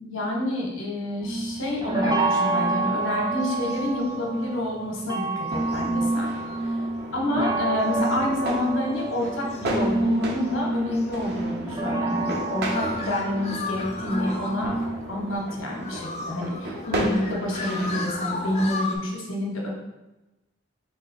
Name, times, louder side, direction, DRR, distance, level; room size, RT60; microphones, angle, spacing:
voice 1, 0.0-6.3 7.1-14.7 15.1-19.7, left 1 dB, 80° left, -1 dB, 1.1 m, -28 dB
sound 1, 1.2-15.3, right 2 dB, 20° right, 0.5 m, -28 dB
sound 2, 3.0-4.4 4.8-19.0, left 3 dB, 35° left, 0.5 m, -38 dB
sound 3, 5.6-18.7, right 1 dB, 55° right, 0.8 m, -35 dB
4.1 x 2.9 x 3.8 m, 1.0 s
head